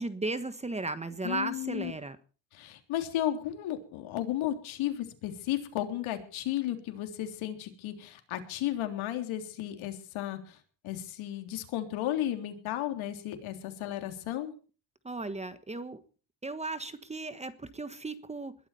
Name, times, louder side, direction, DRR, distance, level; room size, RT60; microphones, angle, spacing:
voice 1, 0.0-2.2 15.0-16.0 16.4-18.5, right 2 dB, 15° right, 12 dB, 1.3 m, -35 dB
voice 2, 1.2-1.9 2.5-10.6 10.8-14.5, left 12 dB, 75° left, 6 dB, 3.6 m, -34 dB
21.0 x 12.5 x 4.3 m, 0.38 s
cardioid pair, 135°, 48 cm